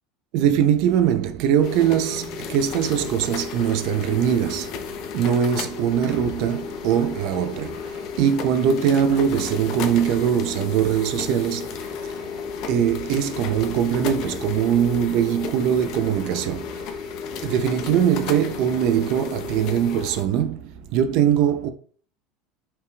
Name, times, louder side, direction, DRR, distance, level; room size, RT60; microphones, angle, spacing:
voice 1, 0.3-12.3 12.7-16.9 17.4-21.7, right 9 dB, 50° right, 0.5 m, -22 dB
sound 1, 1.6-20.2, left 6 dB, 45° left, 0.6 m, -33 dB
5.6 x 3.4 x 2.3 m
cardioid pair, 165°, 0 cm